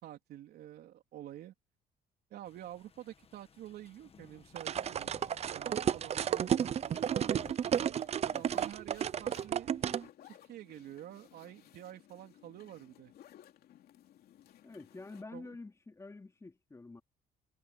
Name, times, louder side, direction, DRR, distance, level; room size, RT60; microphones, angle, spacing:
voice 1, 0.0-1.5 2.3-5.1 5.5-6.8 7.1-7.5 8.2-9.8 10.2-13.1 15.3-15.6, right 12 dB, 70° right, 3.7 m, -48 dB
sound 1, 2.4-7.5, left 6 dB, 35° left, 1.9 m, -58 dB
sound 2, 4.6-10.0, right 9 dB, 40° right, 0.5 m, -32 dB
sound 3, 6.9-15.2, left 11 dB, 65° left, 2.9 m, -59 dB
voice 2, 14.6-17.0, left 3 dB, 15° left, 3.2 m, -48 dB
cardioid pair, 110°, 17 cm